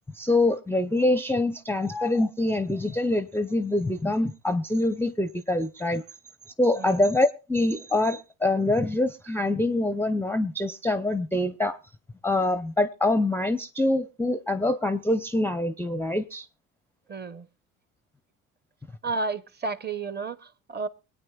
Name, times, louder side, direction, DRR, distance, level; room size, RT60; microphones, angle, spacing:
voice 1, 0.1-6.0 6.6-11.8 12.2-16.5, left 2 dB, 5° left, 0.5 m, -25 dB
voice 2, 17.1-17.5 19.0-20.9, right 3 dB, 25° right, 0.8 m, -32 dB
24.5 x 8.9 x 2.3 m
hypercardioid pair, 55°, 42 cm